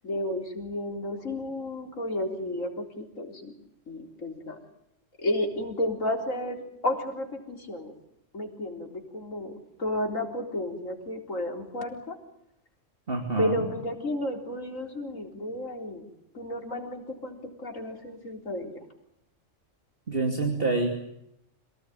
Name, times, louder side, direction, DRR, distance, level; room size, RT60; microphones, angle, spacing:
voice 1, 0.0-3.5 3.9-4.6 5.2-7.9 8.3-9.5 9.8-12.2 13.4-16.0 16.3-18.8, left 1 dB, 85° left, 3 dB, 4.4 m, -32 dB
voice 2, 13.1-13.7 20.1-20.9, right 3 dB, 45° right, 3 dB, 2.9 m, -27 dB
28.0 x 18.5 x 9.3 m, 0.80 s
omnidirectional pair, 1.3 m